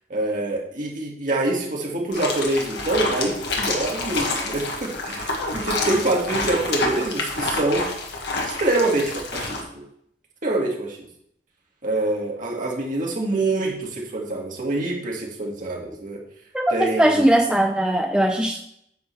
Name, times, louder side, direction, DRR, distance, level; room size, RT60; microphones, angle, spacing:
voice 1, 0.1-7.9 8.4-9.8 10.4-11.0 11.8-16.2 16.7-17.3, right 2 dB, 45° right, -1 dB, 2.1 m, -25 dB
sound 1, 2.1-9.6, left 2 dB, 65° left, 1.6 m, -28 dB
voice 2, 16.5-18.6, right 1 dB, 5° right, 3 dB, 0.4 m, -19 dB
9.4 x 3.8 x 7.0 m, 0.73 s
head